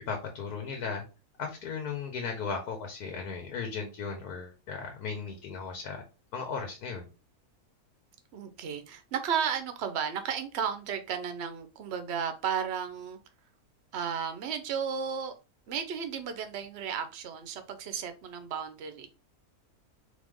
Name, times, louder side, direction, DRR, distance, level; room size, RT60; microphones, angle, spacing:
voice 1, 0.1-1.0 1.4-6.0 6.3-7.1, left 5 dB, 85° left, 1.5 m, -36 dB
voice 2, 8.3-13.2 13.9-15.3 15.7-19.1, right 7 dB, 55° right, 0.9 m, -34 dB
4.1 x 3.3 x 3.6 m
omnidirectional pair, 1.6 m